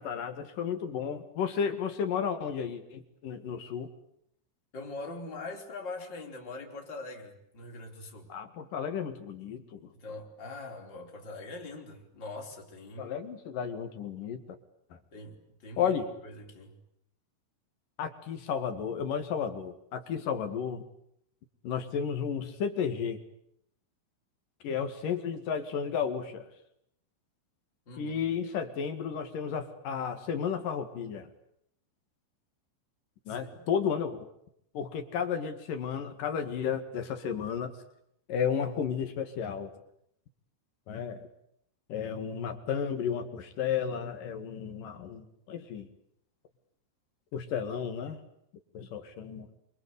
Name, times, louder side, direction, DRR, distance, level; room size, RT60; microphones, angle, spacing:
voice 1, 0.0-3.9 8.3-9.9 13.0-14.4 15.8-16.1 18.0-20.8 21.6-23.2 24.6-26.5 28.0-31.3 33.3-34.3 34.7-37.8 38.3-39.7 40.9-41.3 41.9-45.9 47.3-48.2 48.7-49.5, left 7 dB, 50° left, 8 dB, 3.0 m, -33 dB
voice 2, 4.7-8.3 9.9-13.2 15.1-15.9 16.2-16.8 27.9-28.2 33.3-33.7, left 2 dB, 25° left, 0 dB, 4.7 m, -43 dB
26.5 x 25.0 x 8.3 m, 0.72 s
omnidirectional pair, 5.7 m